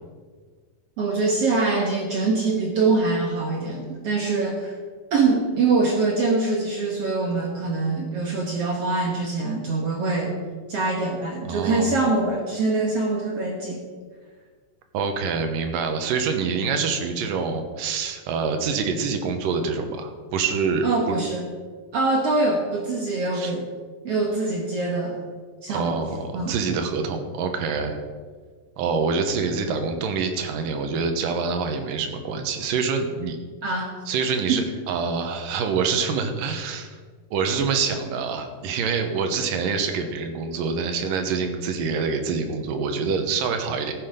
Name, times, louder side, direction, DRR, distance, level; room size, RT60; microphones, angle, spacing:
voice 1, 1.0-4.8 5.1-10.4 10.7-13.8 20.8-21.4 21.9-23.7 24.0-25.2 25.6-26.0 26.3-26.8 33.6-33.9 34.5-34.6, right 3 dB, 60° right, 0 dB, 1.7 m, -24 dB
voice 2, 11.5-11.9 14.9-20.9 23.3-23.5 25.7-28.0 28.8-33.4 34.1-36.9 37.3-43.9, right 5 dB, 75° right, 6 dB, 2.7 m, -26 dB
14.5 x 7.9 x 5.2 m, 1.5 s
omnidirectional pair, 4.1 m